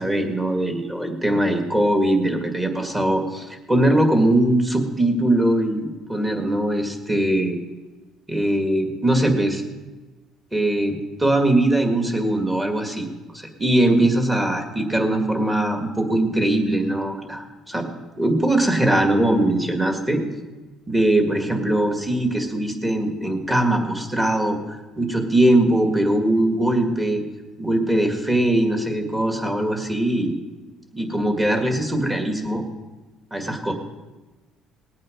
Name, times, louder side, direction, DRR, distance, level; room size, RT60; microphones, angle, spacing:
voice 1, 0.0-7.6 8.3-9.6 10.5-13.1 13.3-17.9 18.2-20.2 20.9-27.2 27.6-30.3 30.9-32.6 33.3-33.7, right 1 dB, 10° right, 4 dB, 2.0 m, -21 dB
19.5 x 8.6 x 5.1 m, 1.2 s
cardioid pair, 125°, 0 cm